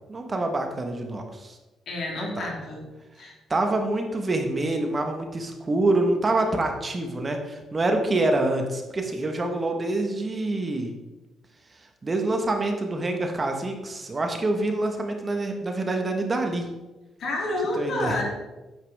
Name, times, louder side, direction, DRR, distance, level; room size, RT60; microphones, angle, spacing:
voice 1, 0.1-1.6 2.2-2.5 3.5-10.9 12.0-16.7 17.8-18.1, right 2 dB, 30° right, 4 dB, 1.4 m, -26 dB
voice 2, 1.9-2.9 3.2-3.3 17.2-18.2, left 2 dB, 65° left, -2 dB, 3.0 m, -29 dB
9.3 x 7.6 x 3.6 m, 1.1 s
cardioid pair, 90°, 0 cm